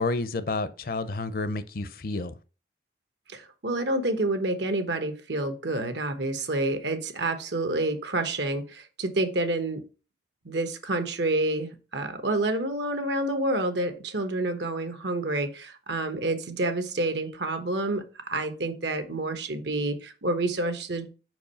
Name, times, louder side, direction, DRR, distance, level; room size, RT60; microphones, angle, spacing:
voice 1, 0.0-2.3, left 3 dB, 55° left, 0.5 m, -30 dB
voice 2, 3.3-9.8 10.4-21.1, right 2 dB, 75° right, 1.1 m, -28 dB
5.3 x 4.7 x 5.5 m
head